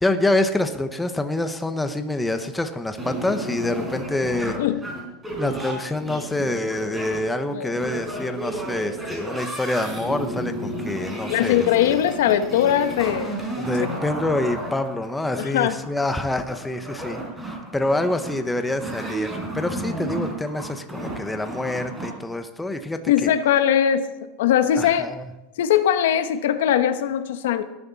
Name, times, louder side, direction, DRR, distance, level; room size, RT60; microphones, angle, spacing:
voice 1, 0.0-4.6 5.4-11.7 13.6-23.3 24.8-25.3, left 2 dB, 5° left, 7 dB, 0.8 m, -26 dB
sound 1, 3.0-22.1, right 1 dB, 10° right, 4.1 m, -32 dB
voice 2, 4.4-4.8 7.5-7.8 11.3-14.0 15.4-15.8 23.1-24.1 24.4-25.1 25.6-27.6, left 10 dB, 85° left, 10 dB, 1.1 m, -21 dB
18.5 x 11.0 x 4.1 m, 0.96 s
supercardioid pair, 160°, 0 cm